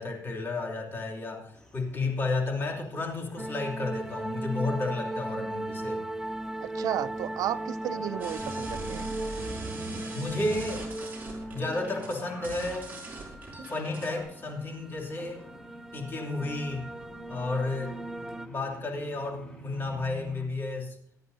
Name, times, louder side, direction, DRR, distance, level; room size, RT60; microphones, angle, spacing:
voice 1, 0.0-6.0 10.1-10.9 11.5-13.0 13.7-15.4 15.9-16.9 17.3-18.0 18.4-21.0, left 2 dB, 35° left, 0 dB, 2.9 m, -32 dB
sound 1, 1.5-20.5, equal, 15° left, 2.5 m, -51 dB
sound 2, 3.4-18.5, right 1 dB, 5° right, 0.7 m, -37 dB
voice 2, 6.6-9.1, right 11 dB, 80° right, 16 dB, 0.5 m, -33 dB
sound 3, 8.2-14.2, right 3 dB, 25° right, 5.1 m, -41 dB
24.5 x 9.4 x 2.8 m, 0.68 s
cardioid pair, 120°, 6 cm